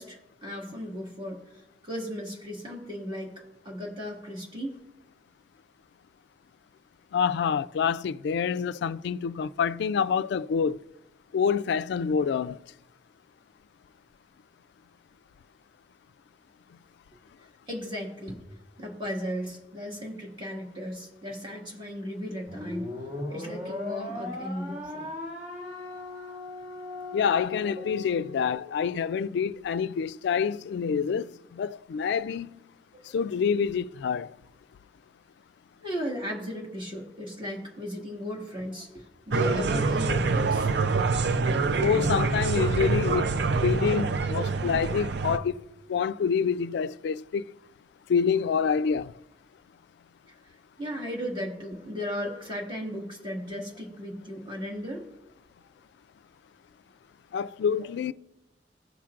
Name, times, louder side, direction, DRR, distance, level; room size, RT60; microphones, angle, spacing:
voice 1, 0.0-1.4 1.8-4.8 17.7-18.4 18.8-22.9 23.3-25.1 27.6-27.7 32.9-33.2 35.8-40.7 50.4-55.1 57.8-57.9, equal, 30° right, 1.7 m, -36 dB
voice 2, 7.1-10.8 11.3-12.6 27.1-32.6 33.1-34.3 41.8-47.4 48.1-49.1 57.3-58.1, left 6 dB, 65° left, 0.3 m, -27 dB
sound 1, 22.5-29.0, left 2 dB, 45° right, 1.4 m, -38 dB
sound 2, 39.3-45.4, right 4 dB, 65° right, 0.5 m, -26 dB
16.5 x 5.8 x 2.4 m
head